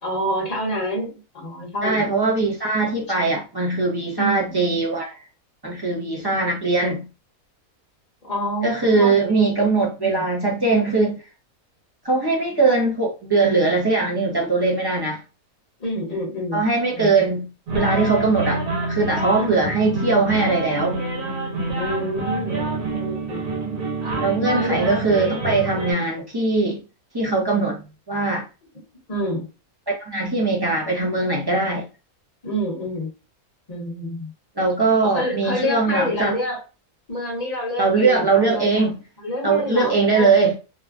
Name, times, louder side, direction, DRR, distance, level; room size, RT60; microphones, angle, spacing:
voice 1, 0.0-2.2 4.2-4.6 8.2-9.5 10.0-10.2 15.8-16.6 16.9-17.3 19.3-19.6 21.7-23.9 24.5-25.2 25.8-26.1 29.1-29.5 32.4-33.1 33.7-34.3 35.0-36.6 37.1-38.8 39.2-40.3, equal, 30° left, 1.0 m, -28 dB
voice 2, 1.8-5.2 5.6-7.1 8.6-11.2 12.0-15.2 16.5-17.5 17.7-18.6 18.9-21.0 24.2-26.8 27.1-27.8 28.1-28.4 29.9-31.9 34.6-36.3 37.8-39.0 39.4-40.5, right 3 dB, 25° right, 0.5 m, -20 dB
sound 1, 17.7-25.9, right 2 dB, 85° right, 1.4 m, -27 dB
3.0 x 2.2 x 2.4 m
omnidirectional pair, 1.5 m